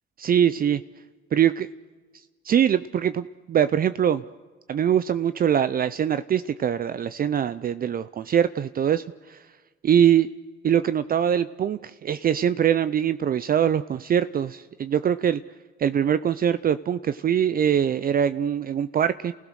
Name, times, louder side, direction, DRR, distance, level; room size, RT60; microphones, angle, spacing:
voice 1, 0.2-0.8 1.3-1.7 2.4-4.2 4.7-9.4 9.8-10.3 10.6-15.4 15.8-19.3, right 9 dB, 45° right, 13 dB, 0.6 m, -23 dB
29.5 x 16.0 x 6.4 m, 1.4 s
cardioid pair, 90°, 20 cm